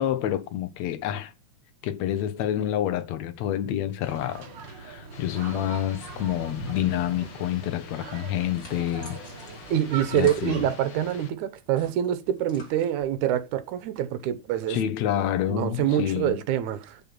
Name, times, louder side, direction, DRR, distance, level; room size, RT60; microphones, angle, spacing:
voice 1, 0.0-1.3 1.8-9.2 10.1-10.6 14.7-16.4, left 11 dB, 70° left, 2.0 m, -28 dB
sound 1, 4.0-10.7, right 5 dB, 45° right, 1.8 m, -41 dB
sound 2, 5.1-11.3, left 8 dB, 85° left, 1.0 m, -47 dB
sound 3, 8.5-11.2 11.6-13.3, left 2 dB, 30° left, 2.5 m, -51 dB
voice 2, 9.7-14.8 15.5-17.0, right 10 dB, 75° right, 2.2 m, -26 dB
7.5 x 7.2 x 5.9 m
omnidirectional pair, 3.6 m